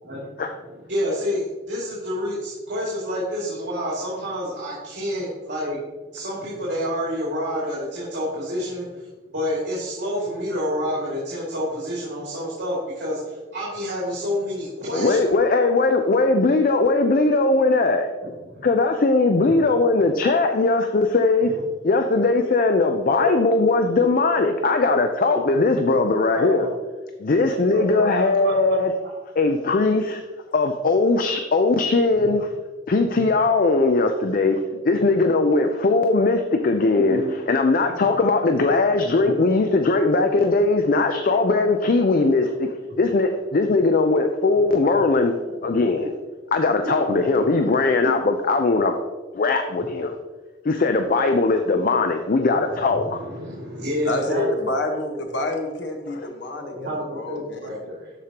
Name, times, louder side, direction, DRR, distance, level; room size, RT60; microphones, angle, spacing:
voice 1, 0.0-5.8 6.1-15.3 18.2-18.7 21.4-21.6 23.2-23.3 25.3-25.4 26.3-26.7 27.7-28.8 32.2-32.3 37.1-37.2 38.0-38.1 38.6-38.7 45.6-45.9 47.1-47.2 48.0-48.2 52.7-54.7 56.6-58.1, equal, 80° right, -7 dB, 2.4 m, -29 dB
voice 2, 14.9-18.1 18.6-21.5 21.8-26.7 27.2-28.9 29.4-30.2 30.5-32.5 32.9-34.6 34.9-37.2 37.5-42.7 43.0-45.3 45.6-46.1 46.5-48.9 49.3-50.1 50.6-53.2 56.2-56.3, left 3 dB, 50° left, 6 dB, 0.5 m, -19 dB
voice 3, 54.0-57.7, left 1 dB, 80° left, 3 dB, 1.2 m, -28 dB
12.5 x 4.9 x 2.9 m, 1.3 s
head